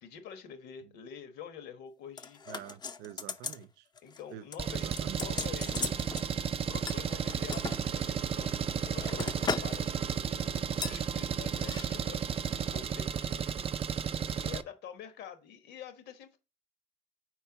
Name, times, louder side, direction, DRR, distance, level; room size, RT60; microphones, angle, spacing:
voice 1, 0.0-2.4 4.0-6.1 6.7-12.2 12.6-13.6 14.1-16.4, left 8 dB, 75° left, 1.3 m, -47 dB
sound 1, 2.2-3.6 4.0-4.2 4.5-6.3 6.9-7.8 8.4-9.8 10.1-10.3 10.8-11.0 11.6-11.8 12.1-12.2, left 5 dB, 25° left, 0.5 m, -38 dB
voice 2, 2.5-3.8 4.3-4.4 4.7-5.3, right 12 dB, 85° right, 0.6 m, -46 dB
Engine, 4.6-14.6, right 7 dB, 35° right, 0.4 m, -33 dB
4.5 x 4.5 x 5.7 m
cardioid pair, 110°, 17 cm